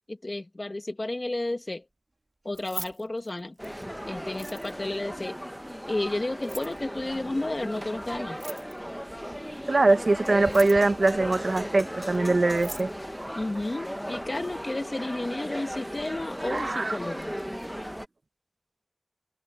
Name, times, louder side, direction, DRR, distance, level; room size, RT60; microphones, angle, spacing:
voice 1, 0.1-1.9 2.4-3.6 4.1-5.4 5.9-8.4 13.4-17.3, left 2 dB, 55° left, 1.8 m, -32 dB
Keys jangling, 2.4-3.8 4.3-5.0 6.3-6.8 8.3-9.0 10.3-11.0 12.1-12.2 12.5-12.9, right 2 dB, 55° right, 2.8 m, -41 dB
sound 1, 3.6-18.1, equal, 5° right, 1.1 m, -36 dB
voice 2, 9.7-12.9 16.4-17.0, right 2 dB, 90° right, 1.0 m, -22 dB
wide cardioid pair, 50°, 0 cm